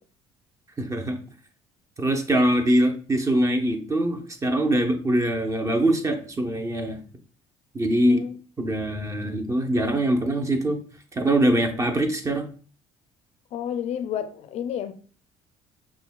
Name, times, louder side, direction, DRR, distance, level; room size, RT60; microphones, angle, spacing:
voice 1, 0.8-1.2 2.0-7.0 7.7-8.2 8.6-10.8 11.1-12.5, right 1 dB, 25° right, 0.7 m, -23 dB
voice 2, 8.0-8.4 13.5-14.9, left 9 dB, 60° left, 0.4 m, -30 dB
5.7 x 2.2 x 2.2 m
supercardioid pair, 75°, 13 cm